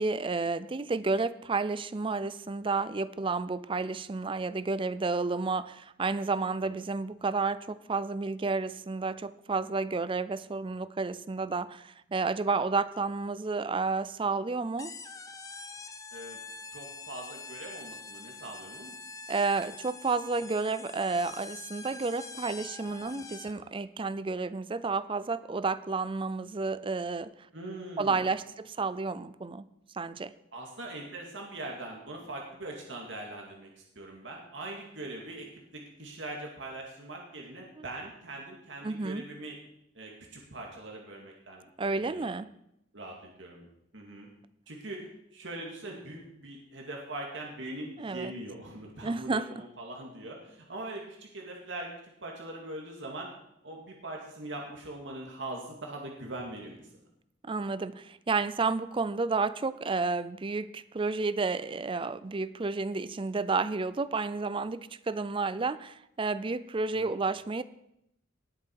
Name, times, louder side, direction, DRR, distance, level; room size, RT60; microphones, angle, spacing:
voice 1, 0.0-14.9 19.3-27.3 28.0-29.7 29.9-30.3 37.8-37.9 38.8-39.2 41.8-42.5 48.0-48.3 49.0-49.5 57.4-67.6, right 4 dB, 25° right, 15 dB, 0.5 m, -31 dB
sound 1, 14.8-23.7, left 4 dB, 20° left, 0.8 m, -45 dB
voice 2, 16.7-18.9 27.5-28.2 30.5-35.5 35.7-39.5 39.9-42.3 42.9-43.7 43.9-44.3 44.7-51.9 52.2-53.3 53.6-56.8 66.9-67.2, right 2 dB, 70° right, 0 dB, 2.3 m, -42 dB
18.5 x 7.5 x 4.7 m, 0.80 s
head